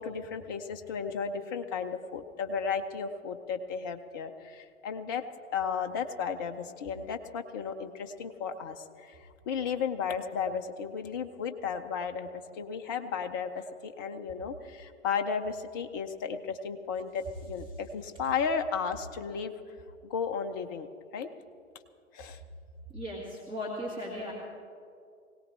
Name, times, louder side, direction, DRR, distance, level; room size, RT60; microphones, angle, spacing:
voice 1, 0.0-5.2 5.5-19.5 20.1-20.9 21.1-21.3 22.1-22.4, left 6 dB, 20° left, 7 dB, 0.3 m, -34 dB
voice 2, 22.9-24.3, equal, 15° right, -5 dB, 2.2 m, -37 dB
21.0 x 17.5 x 3.3 m, 2.3 s
figure-of-eight pair, 110°, 39 cm